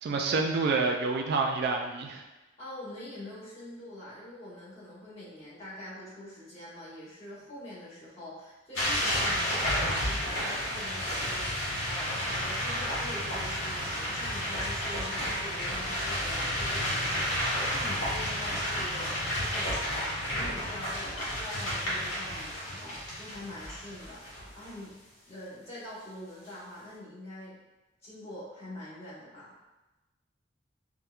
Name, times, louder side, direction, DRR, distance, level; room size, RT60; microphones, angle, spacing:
voice 1, 0.0-2.2, right 4 dB, 55° right, 2 dB, 0.3 m, -28 dB
voice 2, 2.4-21.1 21.4-25.0 25.2-27.6 28.0-29.5, left 1 dB, 35° left, -10 dB, 1.1 m, -44 dB
sound 1, 8.7-24.7, equal, 85° left, 1.2 m, -31 dB
4.2 x 2.2 x 2.3 m, 1.0 s
head